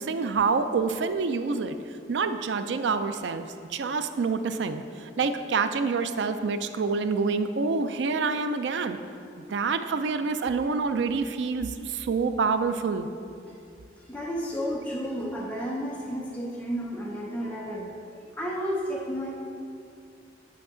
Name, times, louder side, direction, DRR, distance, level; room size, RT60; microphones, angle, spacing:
voice 1, 0.0-1.8 2.1-3.5 3.7-4.8 5.2-9.0 9.5-13.1, right 4 dB, 75° right, 10 dB, 0.4 m, -27 dB
voice 2, 14.1-19.3, equal, 10° left, -4 dB, 0.7 m, -32 dB
8.5 x 5.7 x 3.8 m, 2.4 s
head